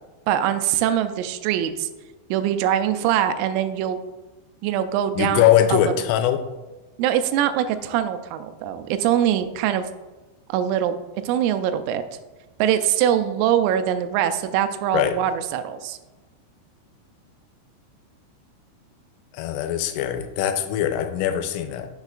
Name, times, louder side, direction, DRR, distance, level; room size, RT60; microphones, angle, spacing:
voice 1, 0.3-1.9 2.3-4.0 4.6-5.9 7.0-9.9 10.5-10.9 11.2-12.0 12.6-16.0, right 10 dB, 85° right, 9 dB, 3.2 m, -23 dB
voice 2, 5.1-6.4 14.9-15.2 19.3-21.9, left 11 dB, 85° left, 8 dB, 3.2 m, -21 dB
10.5 x 7.1 x 2.5 m, 1.2 s
omnidirectional pair, 5.8 m